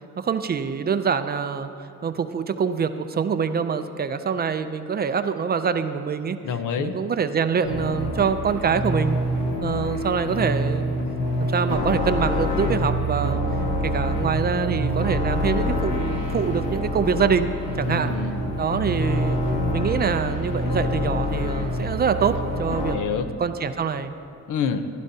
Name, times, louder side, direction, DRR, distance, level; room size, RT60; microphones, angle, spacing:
voice 1, 0.2-1.7 2.0-6.4 6.8-9.2 9.6-11.0 11.5-13.4 13.8-17.5 17.8-18.1 18.6-19.4 19.7-24.1, right 6 dB, 30° right, 10 dB, 0.4 m, -25 dB
voice 2, 6.4-7.0 17.9-18.6 22.9-23.3 24.5-24.9, left 6 dB, 70° left, 8 dB, 0.8 m, -27 dB
sound 1, 7.6-23.0, equal, 85° left, 1.6 m, -26 dB
15.5 x 11.5 x 2.8 m, 3.0 s
cardioid pair, 140°, 32 cm